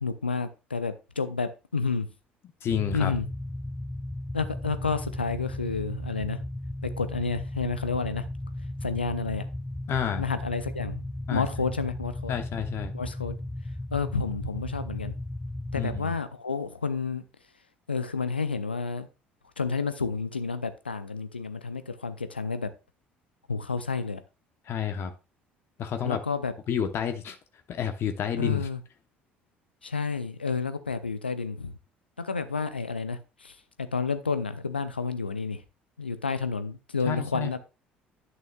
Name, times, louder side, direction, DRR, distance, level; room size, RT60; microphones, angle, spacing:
voice 1, 0.0-2.1 2.9-3.3 4.3-6.4 6.8-8.2 8.8-9.4 10.2-11.0 11.3-12.3 12.9-13.4 13.9-15.1 15.7-17.2 17.9-19.1 19.6-22.7 23.5-24.2 26.0-26.5 28.4-28.8 29.8-31.7 32.2-35.6 36.0-37.6, left 4 dB, 90° left, 0.5 m, -30 dB
voice 2, 2.6-3.1 9.9-10.2 11.3-11.5 12.3-12.9 15.7-16.2 24.7-25.1 25.8-26.2 26.7-27.4 27.7-28.6 37.1-37.5, left 8 dB, 50° left, 0.9 m, -29 dB
sound 1, 2.7-16.0, left 1 dB, 10° left, 0.4 m, -35 dB
11.0 x 6.2 x 2.3 m
figure-of-eight pair, 55°, 5 cm